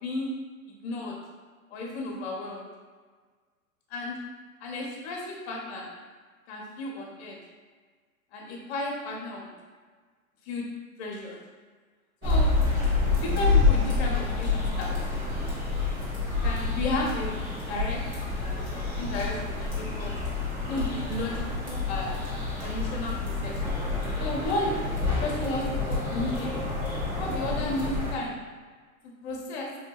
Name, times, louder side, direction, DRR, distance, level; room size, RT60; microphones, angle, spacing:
voice 1, 0.7-1.2 1.7-2.7 3.9-4.2 4.6-5.9 6.5-7.4 8.3-9.5 10.4-10.6 11.0-11.4 12.2-12.5 13.1-15.2 16.4-17.4 17.7-18.0 18.3-20.2 20.6-22.2 22.6-23.8 24.2-24.7 25.0-26.7 27.1-28.4 29.2-29.7, left 2 dB, 50° left, -1 dB, 0.9 m, -33 dB
sound 1, 12.2-28.1, left 3 dB, 10° right, 0.4 m, -28 dB
3.8 x 2.6 x 2.3 m, 1.5 s
hypercardioid pair, 125°, 43 cm